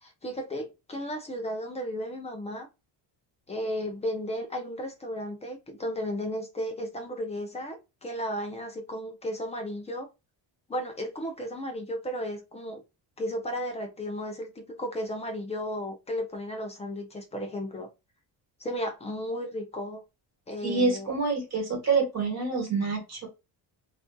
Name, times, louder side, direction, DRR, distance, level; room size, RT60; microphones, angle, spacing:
voice 1, 0.0-2.7 3.5-10.1 10.7-12.8 13.2-17.9 18.6-20.0 20.5-21.1, equal, 15° left, 0.3 m, -34 dB
voice 2, 20.6-23.3, right 4 dB, 40° right, 1.1 m, -27 dB
2.5 x 2.3 x 2.2 m
cardioid pair, 180°, 43 cm